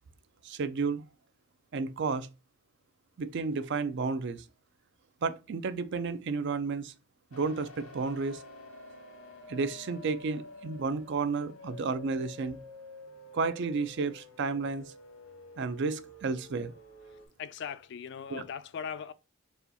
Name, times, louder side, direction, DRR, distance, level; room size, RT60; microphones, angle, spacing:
voice 1, 0.4-1.0 1.7-2.3 3.2-4.4 5.2-6.9 7.3-8.4 9.5-12.6 13.3-14.9 15.6-16.7 18.3-18.4, right 4 dB, 55° right, 0.4 m, -32 dB
sound 1, 7.3-17.3, left 2 dB, 85° left, 1.3 m, -49 dB
voice 2, 17.4-19.1, left 7 dB, 55° left, 0.3 m, -39 dB
4.2 x 2.3 x 3.9 m
head